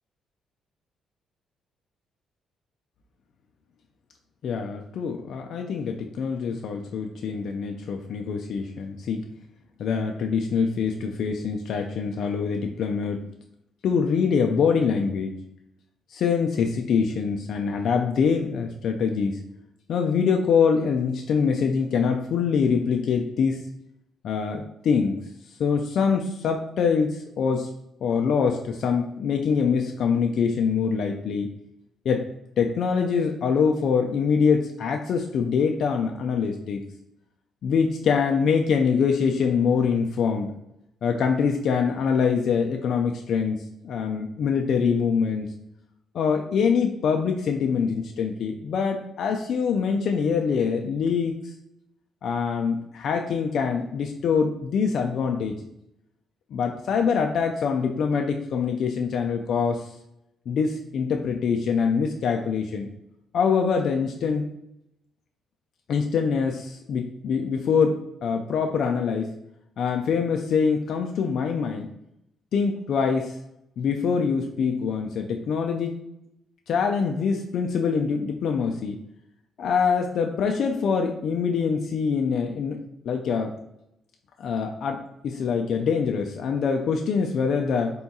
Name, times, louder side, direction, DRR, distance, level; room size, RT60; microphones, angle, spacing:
voice 1, 4.4-9.3 9.8-13.2 13.8-15.4 16.1-19.4 19.9-23.6 24.2-25.2 25.6-27.7 28.0-31.5 32.1-32.2 32.6-36.8 37.6-40.5 41.0-43.6 43.8-45.5 46.1-51.3 52.2-55.5 56.5-59.9 60.5-62.9 63.3-64.5 65.9-69.3 69.8-71.9 72.5-73.4 73.8-76.0 76.7-79.0 79.6-83.5 84.4-88.0, left 6 dB, 65° left, 3 dB, 0.3 m, -24 dB
3.6 x 2.3 x 4.0 m, 0.82 s
cardioid pair, 90°, 0 cm